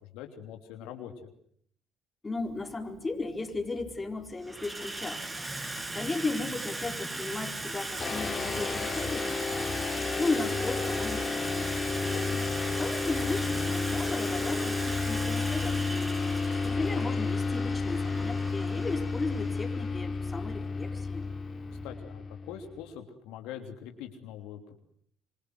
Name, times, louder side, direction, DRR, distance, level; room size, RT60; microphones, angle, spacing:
voice 1, 0.0-1.3 12.1-12.6 21.7-24.7, left 9 dB, 80° left, 5 dB, 3.1 m, -43 dB
voice 2, 2.2-5.2 5.9-9.6 10.2-12.1 12.8-16.0 16.6-21.3, left 3 dB, 25° left, 5 dB, 4.3 m, -35 dB
Water tap faucet / Sink (filling or washing), 2.5-2.6 3.5-4.0 4.3-21.9, right 2 dB, 20° right, 6.4 m, -38 dB
sound 1, 8.0-22.8, left 4 dB, 40° left, 4.2 m, -31 dB
27.5 x 23.5 x 7.9 m, 0.63 s
supercardioid pair, 65°, 0 cm